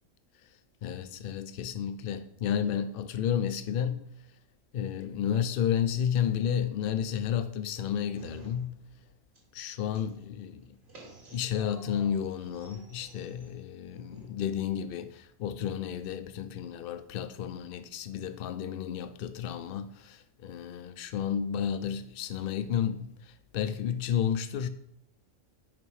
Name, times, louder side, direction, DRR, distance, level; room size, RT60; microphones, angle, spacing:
voice 1, 0.8-4.1 4.7-8.8 9.5-10.8 11.3-24.7, left 9 dB, 60° left, 0.6 m, -32 dB
sound 1, 8.1-9.1 9.3-14.3, right 2 dB, 50° right, 2.5 m, -52 dB
6.0 x 5.1 x 4.7 m
omnidirectional pair, 1.3 m